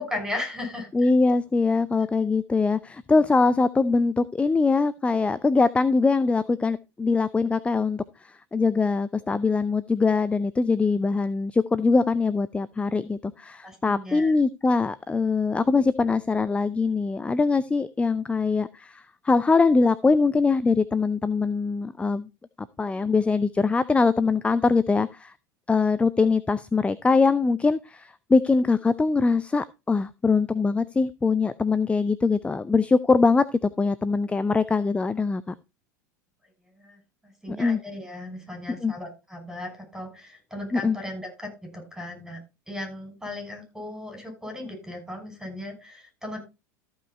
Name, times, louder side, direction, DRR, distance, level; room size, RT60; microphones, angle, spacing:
voice 1, 0.0-1.1 13.6-14.3 36.7-42.4 42.7-46.4, left 1 dB, 5° right, 4 dB, 6.1 m, -36 dB
voice 2, 0.9-22.3 22.8-25.3 25.7-35.5 37.5-37.8 38.8-38.9 40.7-41.0, left 4 dB, 10° left, 16 dB, 0.5 m, -22 dB
14.0 x 5.5 x 4.1 m, 0.27 s
hypercardioid pair, 85°, 10 cm